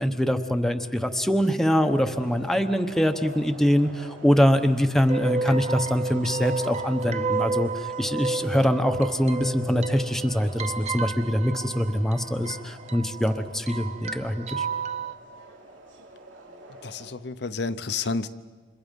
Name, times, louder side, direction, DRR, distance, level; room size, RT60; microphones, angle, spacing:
voice 1, 0.0-14.7, equal, ahead, 6 dB, 1.0 m, -24 dB
sound 1, 1.7-17.1, right 2 dB, 85° right, 3.3 m, -46 dB
sound 2, 5.1-15.1, right 4 dB, 35° right, 0.8 m, -32 dB
voice 2, 16.8-18.3, left 4 dB, 60° left, 10 dB, 0.8 m, -30 dB
29.5 x 27.0 x 5.4 m, 1.4 s
head